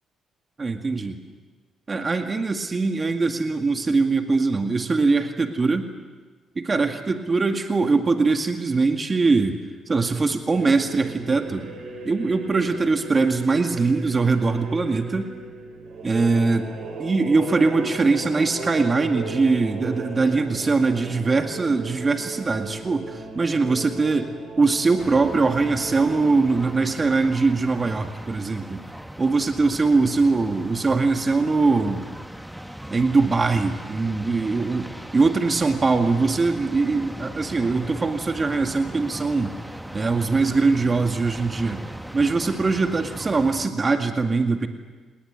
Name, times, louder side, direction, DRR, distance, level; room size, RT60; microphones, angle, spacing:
voice 1, 0.6-1.2 1.9-5.9 6.6-9.6 9.9-11.7 12.0-15.3 16.0-16.7 17.0-28.8 29.2-32.1 32.9-39.5 39.9-41.8 42.1-44.7, right 3 dB, 30° right, 5 dB, 2.1 m, -22 dB
sound 1, 10.5-28.0, right 3 dB, 70° right, 7.6 m, -37 dB
sound 2, 25.0-43.7, equal, 5° right, 1.2 m, -39 dB
28.0 x 20.0 x 9.6 m, 1.3 s
cardioid pair, 90°, 0 cm